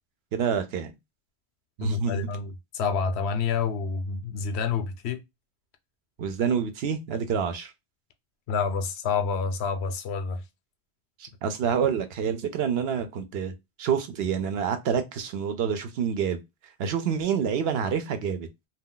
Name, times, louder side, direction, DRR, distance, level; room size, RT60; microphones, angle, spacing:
voice 1, 0.3-0.9 1.8-2.3 6.2-7.7 11.2-13.5 13.8-16.4 16.8-18.5, right 7 dB, 75° right, 0.8 m, -27 dB
voice 2, 1.8-5.2 8.5-10.4, left 5 dB, 85° left, 0.8 m, -28 dB
2.3 x 2.3 x 3.6 m
omnidirectional pair, 1.1 m